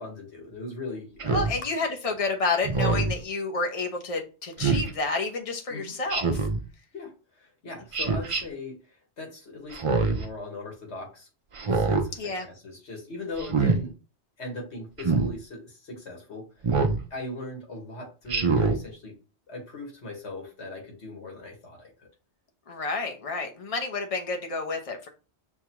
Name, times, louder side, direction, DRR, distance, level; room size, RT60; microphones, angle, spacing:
voice 1, 0.0-1.6 5.7-6.0 6.9-11.3 11.7-13.9 14.4-16.8 17.1-19.2 19.5-22.1, left 2 dB, 80° left, 1 dB, 1.8 m, -39 dB
Speech synthesizer, 1.2-1.5 2.6-3.1 4.6-4.9 6.1-6.6 7.9-8.4 9.7-10.2 11.5-12.1 13.4-13.8 15.0-15.3 16.6-17.0 18.3-18.8, right 4 dB, 40° right, 0.5 m, -24 dB
voice 2, 1.3-6.5 12.2-12.5 22.7-25.1, left 3 dB, 35° left, 3 dB, 0.8 m, -30 dB
6.4 x 2.3 x 2.9 m, 0.33 s
omnidirectional pair, 1.1 m